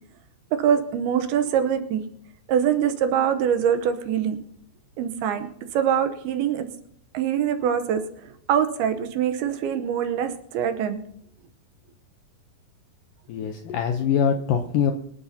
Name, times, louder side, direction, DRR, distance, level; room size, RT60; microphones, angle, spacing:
voice 1, 0.6-2.0 2.5-4.4 5.0-5.5 5.7-6.7 7.1-11.0, right 8 dB, 75° right, 8 dB, 2.7 m, -24 dB
voice 2, 13.3-14.9, left 7 dB, 75° left, 5 dB, 2.0 m, -23 dB
25.5 x 11.0 x 2.8 m, 0.69 s
omnidirectional pair, 4.8 m